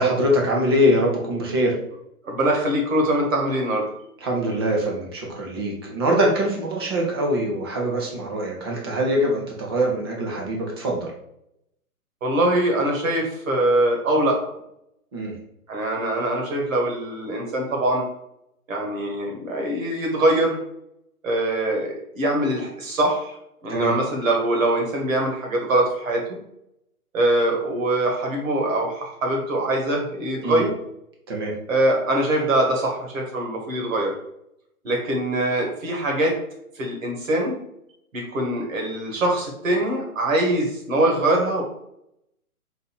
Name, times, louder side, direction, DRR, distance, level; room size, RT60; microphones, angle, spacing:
voice 1, 0.0-1.8 4.2-11.1 15.1-15.4 23.7-23.9 30.4-30.6 31.3-31.5, equal, 15° right, -1 dB, 0.5 m, -23 dB
voice 2, 2.2-3.8 12.2-14.5 15.7-18.0 18.7-20.6 21.2-23.4 23.6-26.2 27.1-30.7 31.7-34.1 34.8-36.3 36.7-37.6 38.1-41.6, right 1 dB, 60° right, 0 dB, 1.7 m, -23 dB
4.0 x 2.6 x 4.4 m, 0.77 s
hypercardioid pair, 140°, 45 cm